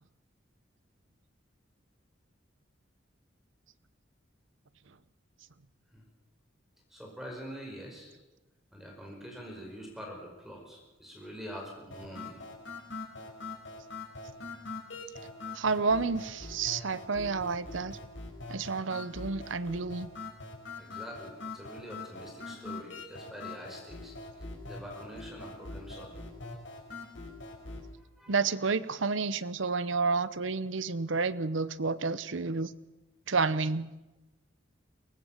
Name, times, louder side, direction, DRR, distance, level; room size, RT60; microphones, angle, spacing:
voice 1, 6.9-8.1 8.7-12.4 20.8-26.2 28.0-28.4, equal, ahead, 0 dB, 5.1 m, -45 dB
sound 1, 11.9-27.9, left 3 dB, 75° left, 5.1 m, -43 dB
voice 2, 15.5-18.0 18.5-20.1 28.3-32.7 33.3-33.9, right 4 dB, 80° right, 16 dB, 0.9 m, -30 dB
23.0 x 19.0 x 7.3 m, 1.0 s
head